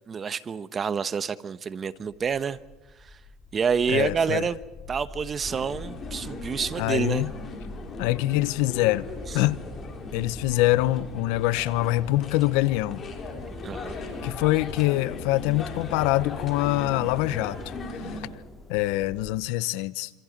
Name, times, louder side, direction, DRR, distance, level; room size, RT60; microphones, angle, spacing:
voice 1, 0.1-2.6 3.0-3.2 3.5-4.6 4.9-7.3 13.6-14.0, right 6 dB, 30° right, 1.0 m, -28 dB
sound 1, 2.1-19.4, left 1 dB, 10° left, 3.4 m, -44 dB
voice 2, 3.9-4.5 6.8-7.3 8.0-9.1 9.3-9.7 10.1-13.0 14.2-17.6 17.9-18.2 18.7-20.1, left 17 dB, 80° left, 0.8 m, -24 dB
sound 2, 5.5-18.2, left 3 dB, 35° left, 5.2 m, -38 dB
27.0 x 26.0 x 5.3 m
cardioid pair, 125°, 0 cm